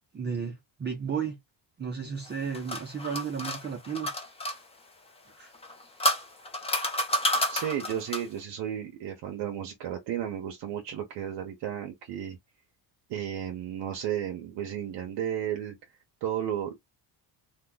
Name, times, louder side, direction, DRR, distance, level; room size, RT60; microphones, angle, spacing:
voice 1, 0.1-1.4 1.8-4.1 5.3-5.5, right 6 dB, 25° right, 0.6 m, -33 dB
sound 1, 2.3-4.6 5.5-8.4, left 1 dB, 15° left, 0.7 m, -30 dB
voice 2, 7.5-12.4 13.1-15.7 16.2-16.7, right 10 dB, 65° right, 0.8 m, -33 dB
2.9 x 2.2 x 3.5 m
cardioid pair, 135°, 44 cm